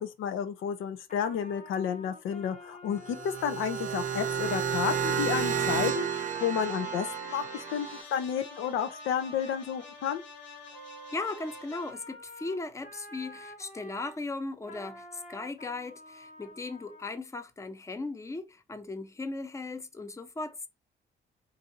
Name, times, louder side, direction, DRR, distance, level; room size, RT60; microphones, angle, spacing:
voice 1, 0.0-10.2, left 8 dB, 85° left, 0.6 m, -31 dB
Trumpet, 1.1-14.2 14.6-17.2, left 1 dB, 40° left, 1.3 m, -49 dB
sound 1, 3.0-8.0, right 8 dB, 40° right, 0.6 m, -31 dB
sound 2, 5.0-11.9, left 4 dB, 65° left, 1.7 m, -48 dB
voice 2, 11.1-20.7, left 3 dB, 15° left, 0.6 m, -37 dB
4.1 x 2.6 x 3.9 m
cardioid pair, 90°, 20 cm